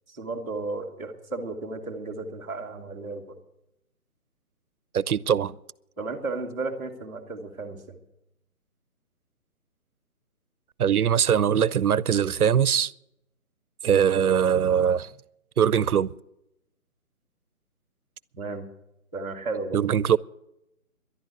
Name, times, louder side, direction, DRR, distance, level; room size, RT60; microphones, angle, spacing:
voice 1, 0.1-3.4 6.0-8.0 18.4-18.7 19.1-19.9, right 3 dB, 10° right, 1.0 m, -34 dB
voice 2, 4.9-5.6 10.8-12.9 13.8-15.1 15.6-16.1 19.7-20.2, right 8 dB, 85° right, 0.7 m, -21 dB
11.5 x 11.5 x 8.0 m
hypercardioid pair, 175°, 43 cm